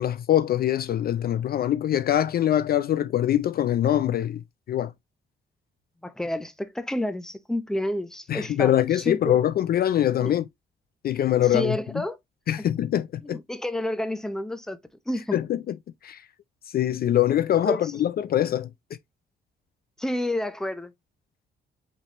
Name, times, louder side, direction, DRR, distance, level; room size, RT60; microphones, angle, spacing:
voice 1, 0.0-4.9 8.3-10.4 11.0-11.8 12.5-13.4 15.3-15.8 16.0-16.2 16.7-18.7, left 11 dB, 50° left, 0.4 m, -23 dB
voice 2, 6.0-9.4 10.2-10.3 11.5-12.2 13.2-14.8 15.1-15.4 17.6-17.9 20.0-20.9, left 1 dB, 5° left, 0.6 m, -30 dB
5.2 x 3.5 x 2.9 m
cardioid pair, 90°, 20 cm